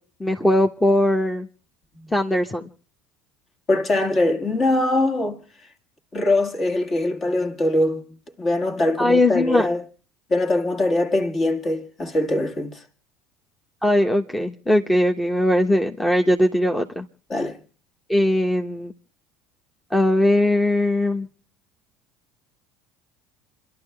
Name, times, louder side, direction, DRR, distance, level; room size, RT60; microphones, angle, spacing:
voice 1, 0.2-1.5 2.1-2.7 9.0-9.7 13.8-17.1 18.1-18.9 19.9-21.3, left 1 dB, 10° left, 1.3 m, -20 dB
voice 2, 3.7-5.4 6.1-8.0 8.4-9.8 10.3-12.8 17.3-17.6, left 2 dB, 35° left, 2.3 m, -22 dB
29.0 x 12.0 x 3.5 m
hypercardioid pair, 70°, 0 cm